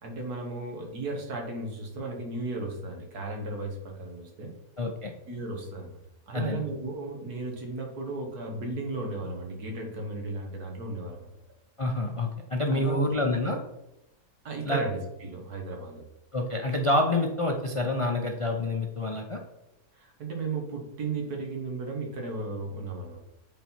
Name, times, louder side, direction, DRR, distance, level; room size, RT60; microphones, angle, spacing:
voice 1, 0.0-4.6 5.3-6.0 6.3-11.3 12.7-13.1 14.4-16.0 19.9-23.2, right 3 dB, 85° right, 1 dB, 2.0 m, -35 dB
voice 2, 4.8-5.1 6.3-6.6 11.8-13.6 14.6-14.8 16.3-19.4, left 2 dB, 50° left, 2 dB, 0.3 m, -27 dB
7.6 x 4.1 x 4.4 m, 0.91 s
omnidirectional pair, 1.6 m